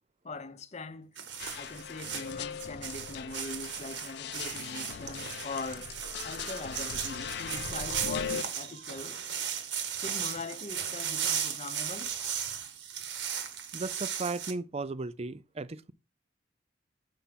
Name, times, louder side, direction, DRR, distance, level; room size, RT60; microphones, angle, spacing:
voice 1, 0.2-1.1 1.6-5.9 6.2-9.2 10.0-12.1, left 3 dB, 40° left, 0.8 m, -41 dB
sound 1, 1.2-14.5, right 8 dB, 80° right, 1.5 m, -36 dB
sound 2, 1.4-8.4, left 7 dB, 65° left, 0.4 m, -39 dB
voice 2, 13.7-15.9, right 3 dB, 35° right, 0.5 m, -36 dB
6.9 x 4.8 x 5.8 m
head